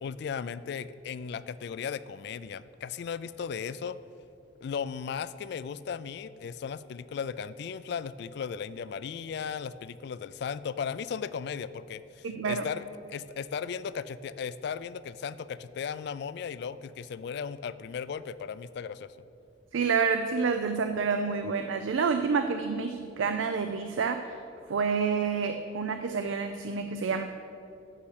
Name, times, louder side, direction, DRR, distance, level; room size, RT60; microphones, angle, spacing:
voice 1, 0.0-4.0 4.6-19.1, left 6 dB, 60° left, 15 dB, 0.3 m, -36 dB
voice 2, 12.2-12.7 19.7-24.4 24.7-27.2, right 5 dB, 80° right, 8 dB, 0.4 m, -28 dB
8.5 x 6.4 x 6.4 m, 2.7 s
head